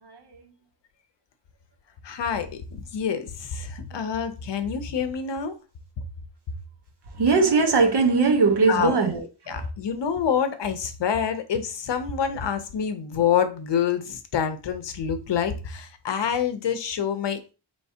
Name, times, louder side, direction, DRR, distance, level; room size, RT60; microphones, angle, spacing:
voice 1, 0.0-0.4 7.1-9.7, right 4 dB, 55° right, 1.0 m, -21 dB
voice 2, 2.0-5.5 8.7-8.9 9.5-17.5, left 7 dB, 60° left, 0.7 m, -27 dB
4.5 x 3.2 x 2.8 m
wide cardioid pair, 130°, 48 cm